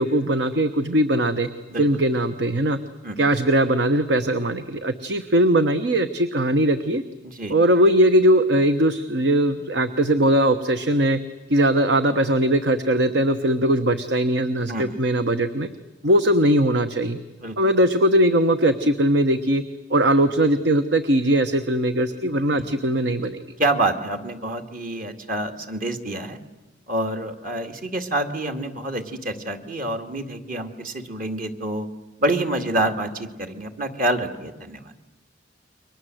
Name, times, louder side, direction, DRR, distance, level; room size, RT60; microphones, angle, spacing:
voice 1, 0.0-1.5 1.8-2.8 3.2-7.0 7.5-11.2 11.5-15.7 16.0-17.2 17.6-19.6 19.9-23.4, right 1 dB, 70° right, 10 dB, 1.1 m, -20 dB
voice 2, 23.6-26.4 26.9-31.9 32.2-34.9, right 1 dB, 50° right, 6 dB, 2.3 m, -27 dB
29.5 x 23.5 x 7.9 m, 1.1 s
head